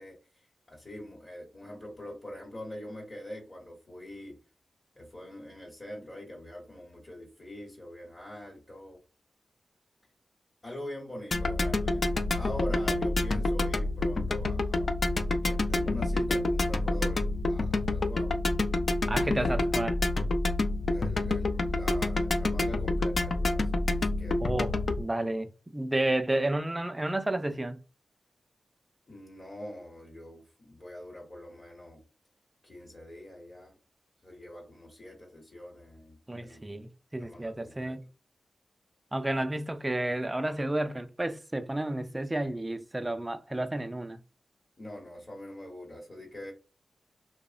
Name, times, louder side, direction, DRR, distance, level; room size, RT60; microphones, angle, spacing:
voice 1, 0.0-4.4 5.0-9.0 10.6-14.9 15.4-18.4 20.9-23.7 24.0-24.5 29.1-32.0 32.6-33.8 34.2-36.6 37.2-38.0 44.8-46.5, left 1 dB, 40° left, 0.8 m, -44 dB
sound 1, 11.3-25.0, left 2 dB, 55° left, 0.3 m, -28 dB
voice 2, 19.1-20.0 24.4-24.7 25.0-27.8 36.3-38.0 39.1-44.2, right 1 dB, 20° right, 0.3 m, -31 dB
2.8 x 2.0 x 2.4 m
cardioid pair, 60°, 0 cm